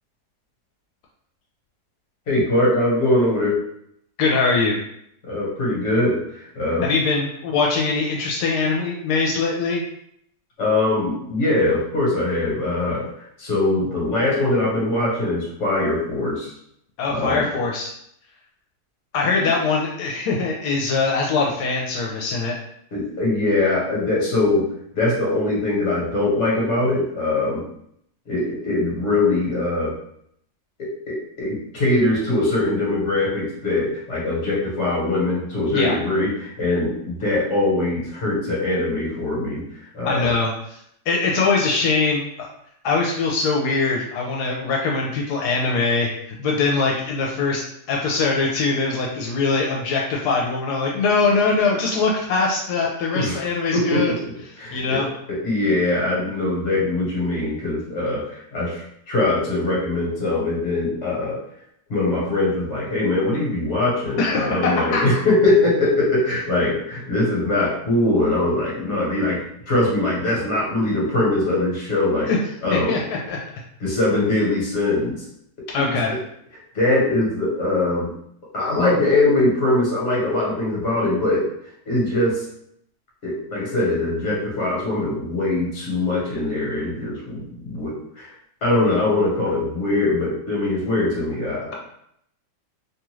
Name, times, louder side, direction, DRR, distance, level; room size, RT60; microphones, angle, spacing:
voice 1, 2.3-3.6 5.2-6.9 10.6-13.0 13.4-16.5 17.1-17.6 22.9-24.6 24.9-27.6 28.3-29.9 30.8-39.6 39.9-40.3 53.1-53.4 53.7-54.2 54.6-55.0 55.3-61.4 61.9-69.4 69.7-72.3 72.6-73.0 73.8-75.2 75.8-76.2 76.7-78.1 78.5-81.4 81.9-82.4 83.2-88.3 88.6-91.7, left 2 dB, 50° left, -5 dB, 1.4 m, -22 dB
voice 2, 4.2-4.8 6.8-9.8 17.0-17.9 19.1-22.5 35.7-35.9 40.0-40.8 41.1-42.5 42.8-46.1 46.4-47.6 47.9-54.1 54.7-55.1 64.2-65.0 72.3-72.4 72.7-73.4 75.7-76.1, left 4 dB, 85° left, -1 dB, 1.1 m, -22 dB
2.9 x 2.4 x 3.0 m, 0.72 s
omnidirectional pair, 1.7 m